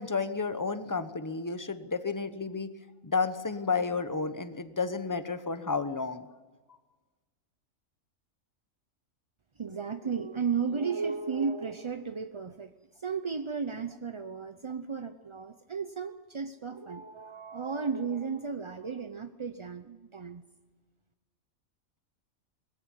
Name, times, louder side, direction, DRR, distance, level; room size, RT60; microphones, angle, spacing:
voice 1, 0.0-2.7 3.0-6.2, left 4 dB, 15° left, 11 dB, 0.8 m, -31 dB
voice 2, 9.6-20.4, right 5 dB, 35° right, 9 dB, 0.4 m, -34 dB
21.0 x 15.0 x 9.7 m, 1.3 s
omnidirectional pair, 1.4 m